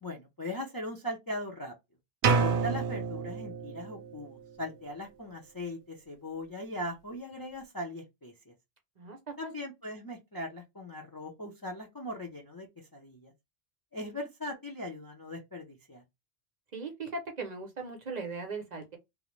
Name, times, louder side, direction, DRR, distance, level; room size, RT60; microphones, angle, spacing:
voice 1, 0.0-1.7 2.4-8.5 9.4-13.3 13.9-16.0, left 1 dB, 30° left, 0.4 m, -39 dB
sound 1, 2.2-4.1, right 5 dB, 85° right, 0.8 m, -28 dB
voice 2, 9.0-9.5 16.7-19.0, right 4 dB, 50° right, 0.6 m, -38 dB
2.4 x 2.0 x 3.0 m
omnidirectional pair, 1.0 m